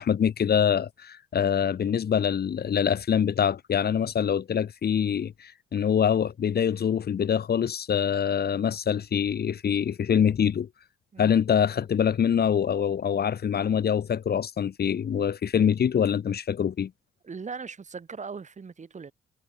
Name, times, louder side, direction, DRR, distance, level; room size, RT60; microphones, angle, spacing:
voice 1, 0.0-10.7 11.2-16.9, left 8 dB, 50° left, 2.5 m, -25 dB
voice 2, 17.2-19.1, right 5 dB, 35° right, 7.7 m, -39 dB
cardioid pair, 90°, 20 cm